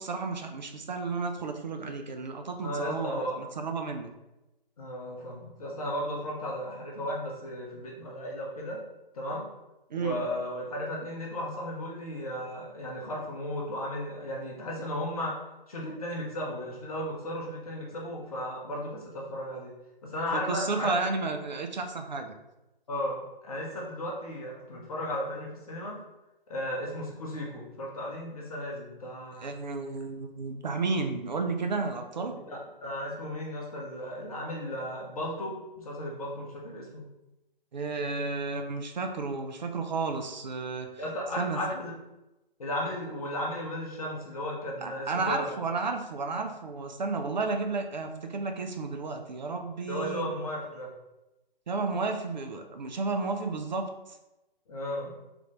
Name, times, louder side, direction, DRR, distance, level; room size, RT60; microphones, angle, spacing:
voice 1, 0.0-4.1 9.9-10.2 20.3-22.3 29.4-32.4 37.7-41.0 41.4-41.6 44.8-50.3 51.7-53.9, right 3 dB, 50° right, 5 dB, 0.4 m, -32 dB
voice 2, 2.6-3.4 4.8-8.8 9.1-9.4 9.9-19.7 20.0-21.0 22.9-26.0 26.5-29.5 32.5-37.1 41.0-41.9 42.6-45.5 49.9-50.9 54.7-55.1, left 1 dB, 40° left, -3 dB, 0.7 m, -35 dB
3.3 x 2.3 x 3.1 m, 0.96 s
figure-of-eight pair, 140°, 29 cm